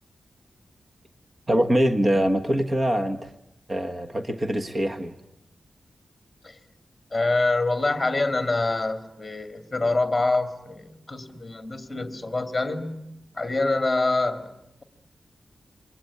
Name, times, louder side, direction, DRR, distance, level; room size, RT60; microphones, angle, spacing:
voice 1, 1.5-3.3 3.7-5.1, equal, 25° right, 5 dB, 1.3 m, -23 dB
voice 2, 7.1-13.0 13.3-14.5, left 2 dB, 15° left, 7 dB, 2.4 m, -25 dB
28.0 x 23.5 x 8.5 m, 0.88 s
wide cardioid pair, 175°, 0 cm